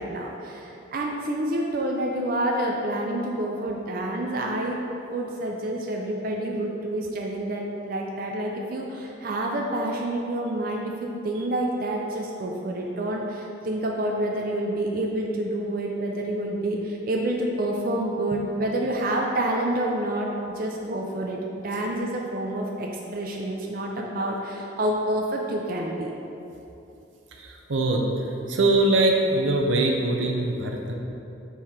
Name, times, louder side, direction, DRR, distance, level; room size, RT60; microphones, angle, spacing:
voice 1, 0.0-4.8 5.1-20.3 20.6-26.1, right 1 dB, 50° right, 0 dB, 0.5 m, -28 dB
voice 2, 27.4-28.0 28.5-30.9, right 2 dB, 90° right, 1 dB, 0.7 m, -22 dB
5.6 x 4.5 x 4.8 m, 2.9 s
head